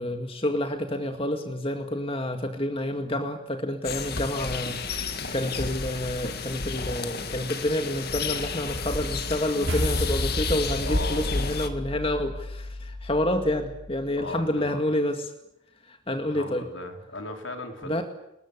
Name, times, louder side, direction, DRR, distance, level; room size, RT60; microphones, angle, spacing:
voice 1, 0.0-15.2 15.8-16.6 17.8-18.0, left 1 dB, 25° left, 5 dB, 2.0 m, -29 dB
sound 1, 3.8-11.7, left 4 dB, 50° left, 2.2 m, -31 dB
sound 2, 9.7-14.2, left 1 dB, 60° right, 6.7 m, -32 dB
voice 2, 10.8-11.6 14.2-14.8 16.2-18.0, left 2 dB, 65° left, 5 dB, 3.9 m, -37 dB
29.5 x 21.0 x 8.3 m, 0.86 s
head